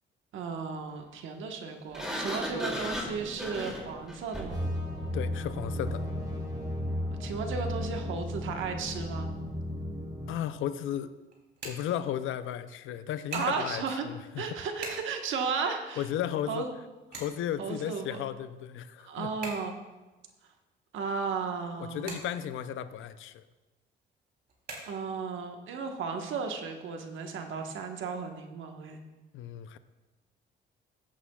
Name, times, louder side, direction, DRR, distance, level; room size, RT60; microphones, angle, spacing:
voice 1, 0.3-4.6 7.2-9.3 13.3-14.1 14.4-16.0 16.5-16.7 17.6-18.2 19.0-19.7 20.9-22.1 24.9-29.0, right 5 dB, 80° right, 4 dB, 1.2 m, -34 dB
Sliding door, 1.9-4.7, equal, 5° right, 2.5 m, -36 dB
sound 1, 4.5-10.3, left 1 dB, 20° right, 2.3 m, -34 dB
voice 2, 5.1-6.0 10.3-11.1 11.6-14.4 16.0-16.6 17.1-19.3 21.8-23.4 29.3-29.8, left 10 dB, 80° left, 13 dB, 0.5 m, -34 dB
sound 2, 8.5-25.4, right 3 dB, 55° right, 3.2 m, -48 dB
15.5 x 8.4 x 2.3 m, 1.1 s
cardioid pair, 90°, 20 cm